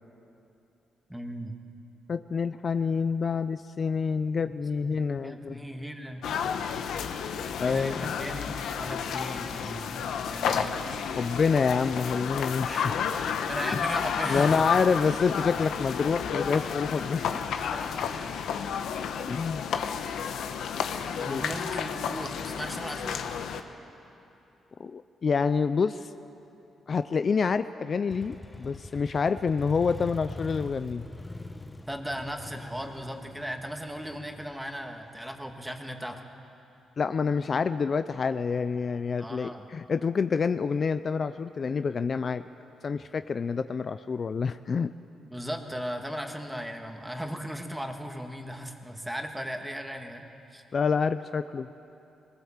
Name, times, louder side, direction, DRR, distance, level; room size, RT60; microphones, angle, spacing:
voice 1, 1.1-1.5 4.4-4.5 4.8-6.2 6.6-6.7 7.6-10.7 11.0-11.1 12.7-14.6 17.3-18.5 21.2-23.2 31.9-36.2 39.2-39.6 45.3-50.2 50.5-50.6, equal, 5° right, 3 dB, 2.0 m, -37 dB
voice 2, 2.1-5.6 7.6-8.1 11.2-12.9 13.7-13.8 14.3-17.3 19.3-19.7 21.3-21.4 24.8-26.1 26.9-31.0 37.0-42.5 42.8-44.9 50.7-51.7, left 5 dB, 45° left, 11 dB, 0.5 m, -27 dB
sound 1, 6.2-23.6, left 7 dB, 80° left, 1.1 m, -31 dB
Motorcycle, 28.1-35.7, left 2 dB, 15° left, 1.0 m, -43 dB
22.0 x 20.0 x 7.4 m, 2.8 s
cardioid pair, 95°, 0 cm